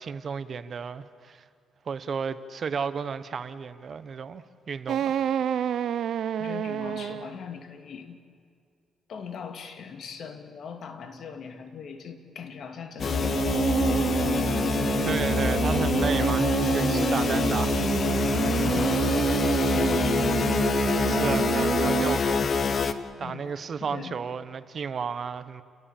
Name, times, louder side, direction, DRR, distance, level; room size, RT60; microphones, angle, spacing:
voice 1, 0.0-1.4 1.8-5.2 15.0-17.9 21.0-22.6 22.9-25.6, right 6 dB, 50° right, 12 dB, 1.1 m, -33 dB
sound 1, 4.9-7.4 13.0-22.2, right 9 dB, 70° right, 0.7 m, -28 dB
voice 2, 6.4-8.2 9.1-13.8 18.6-20.5 23.2-23.5 23.8-24.2, left 6 dB, 65° left, 6 dB, 2.4 m, -40 dB
sound 2, 13.0-22.9, left 5 dB, 45° left, 1.2 m, -25 dB
30.0 x 18.0 x 7.3 m, 2.2 s
cardioid pair, 90°, 0 cm